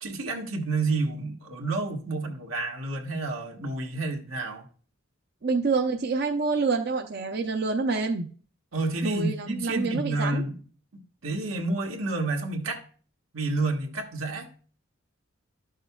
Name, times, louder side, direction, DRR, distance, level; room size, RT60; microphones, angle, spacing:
voice 1, 0.0-4.6 8.7-10.6 11.2-12.8 13.3-14.5, right 3 dB, 85° right, 1.4 m, -29 dB
voice 2, 5.4-8.3 9.0-10.4, right 4 dB, 50° right, 0.6 m, -27 dB
12.0 x 6.5 x 2.3 m
head